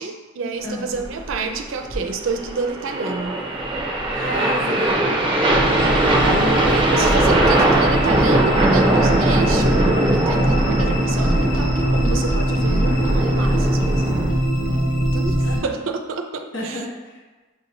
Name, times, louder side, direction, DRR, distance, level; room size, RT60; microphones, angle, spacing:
voice 1, 0.0-3.4 5.8-14.1 14.6-15.4 15.6-16.8, right 4 dB, 75° right, 6 dB, 0.5 m, -29 dB
voice 2, 0.6-1.1 4.2-5.0 15.4-15.9 16.5-17.2, left 1 dB, 65° left, -2 dB, 1.0 m, -31 dB
sound 1, 0.9-14.3, right 1 dB, 25° right, 0.6 m, -21 dB
sound 2, 5.5-15.6, equal, 45° left, 0.8 m, -21 dB
6.8 x 2.8 x 2.6 m, 1.3 s
head